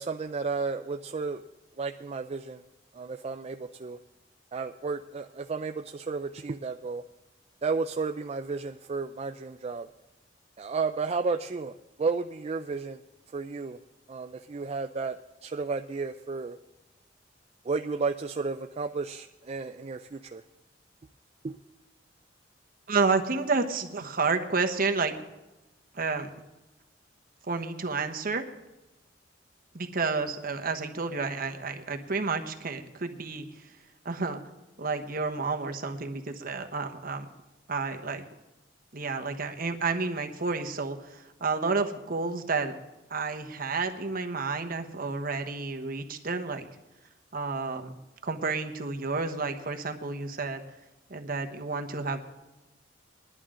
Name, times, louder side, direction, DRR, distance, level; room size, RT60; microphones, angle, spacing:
voice 1, 0.0-1.4 1.8-2.6 2.9-4.0 4.5-7.0 7.6-9.9 10.6-13.0 13.3-13.8 14.1-15.2 15.4-16.6 17.6-20.4 21.4-21.6, right 4 dB, 35° right, 7 dB, 0.4 m, -32 dB
voice 2, 22.9-25.1 25.9-26.3 27.5-28.4 29.7-33.5 34.0-34.4 34.8-37.3 37.7-38.2 38.9-42.7 43.1-46.7 47.3-47.9 48.2-50.6 51.1-52.2, right 4 dB, 50° right, 6 dB, 1.1 m, -30 dB
19.5 x 11.0 x 3.8 m, 1.0 s
head